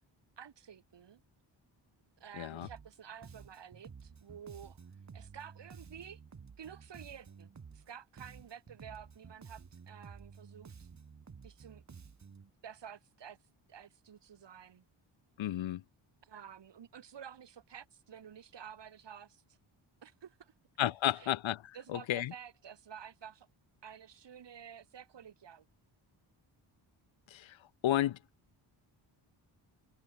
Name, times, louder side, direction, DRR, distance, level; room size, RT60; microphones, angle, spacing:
voice 1, 0.4-1.2 2.2-4.8 5.1-6.2 6.6-10.9 11.4-11.8 12.6-13.4 13.7-14.8 16.2-19.4 20.0-20.5 21.1-21.3 21.7-23.5 23.8-25.7, right 8 dB, 55° right, 1.8 m, -51 dB
voice 2, 2.4-2.7 15.4-15.8 20.8-21.6 21.9-22.3 27.3-27.6 27.8-28.2, left 13 dB, 70° left, 0.8 m, -32 dB
Bass guitar, 2.6-3.0 3.2-7.9 8.2-12.5, right 6 dB, 35° right, 1.3 m, -53 dB
cardioid pair, 60°, 49 cm